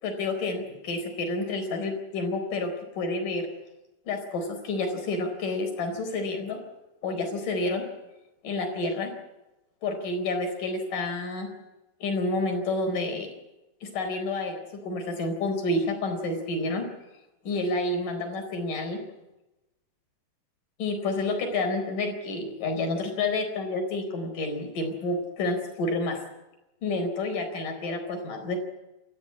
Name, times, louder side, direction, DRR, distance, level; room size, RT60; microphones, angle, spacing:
voice 1, 0.0-3.5 4.1-6.6 7.0-7.9 8.4-9.1 9.8-11.5 12.0-13.3 13.8-16.9 17.4-19.0 20.8-26.2 26.8-28.6, left 2 dB, 50° left, 5 dB, 5.7 m, -29 dB
28.5 x 14.0 x 8.5 m, 0.99 s
omnidirectional pair, 5.0 m